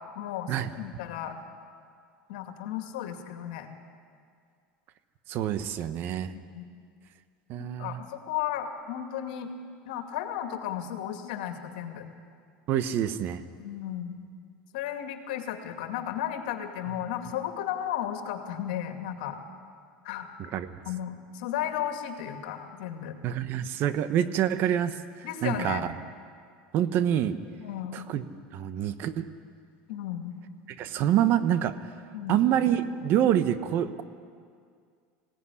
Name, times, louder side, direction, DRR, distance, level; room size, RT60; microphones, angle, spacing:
voice 1, 0.0-1.4 2.3-3.7 6.3-6.6 7.8-9.5 9.8-12.1 13.6-14.2 14.7-19.4 20.0-20.3 20.9-23.2 25.2-25.8 27.6-28.0 29.9-30.3 32.1-32.5, left 10 dB, 80° left, 6 dB, 2.3 m, -34 dB
voice 2, 5.3-6.3 7.5-8.0 12.7-13.4 20.4-20.8 23.2-25.9 26.7-27.3 27.9-28.2 28.5-29.3 30.7-31.7 32.3-34.0, right 10 dB, 50° right, 12 dB, 1.2 m, -26 dB
20.5 x 17.0 x 9.9 m, 2.2 s
supercardioid pair, 120°, 4 cm